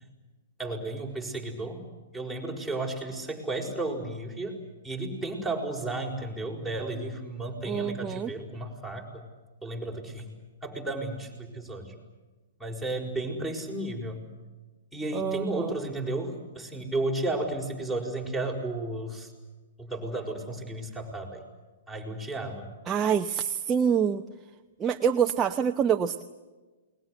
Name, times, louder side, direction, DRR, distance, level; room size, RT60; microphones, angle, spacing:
voice 1, 0.6-1.8 2.1-4.6 4.8-9.2 9.6-10.3 10.6-11.9 12.6-14.2 14.9-19.3 19.8-21.4 21.9-22.7, right 2 dB, 5° left, 5 dB, 5.6 m, -33 dB
voice 2, 7.6-8.3 15.1-15.7 22.9-24.2 24.8-26.2, right 7 dB, 20° right, 5 dB, 0.9 m, -26 dB
29.0 x 21.0 x 8.1 m, 1.2 s
hypercardioid pair, 140°, 0 cm